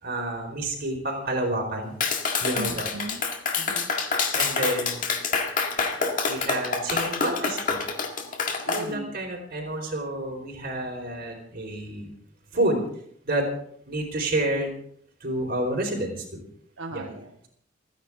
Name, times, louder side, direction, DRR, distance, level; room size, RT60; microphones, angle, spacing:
voice 1, 0.0-1.9 2.4-2.9 4.3-5.1 6.3-7.8 8.7-12.1 12.5-12.8 13.2-13.5 13.9-14.7 15.2-16.2 16.9-17.0, right 1 dB, 50° right, 1 dB, 4.6 m, -29 dB
Clapping, 2.0-8.8, left 5 dB, 40° left, 1.9 m, -27 dB
voice 2, 2.5-3.2 3.6-3.9 8.6-9.2 16.8-17.4, right 2 dB, 70° right, 2 dB, 1.3 m, -37 dB
29.5 x 10.0 x 3.7 m, 0.65 s
head